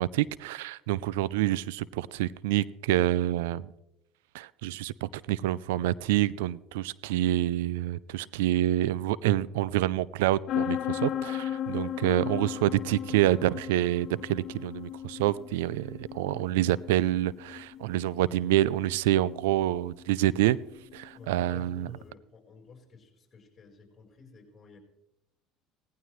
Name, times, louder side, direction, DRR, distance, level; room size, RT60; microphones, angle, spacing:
voice 1, 0.0-3.7 4.3-20.6 20.9-21.9, right 14 dB, 90° right, 21 dB, 0.4 m, -27 dB
sound 1, 10.5-22.0, left 10 dB, 55° left, 0.7 m, -36 dB
voice 2, 21.1-24.8, left 4 dB, 30° left, 0 dB, 4.7 m, -52 dB
18.0 x 15.0 x 3.2 m, 0.88 s
supercardioid pair, 100°, 0 cm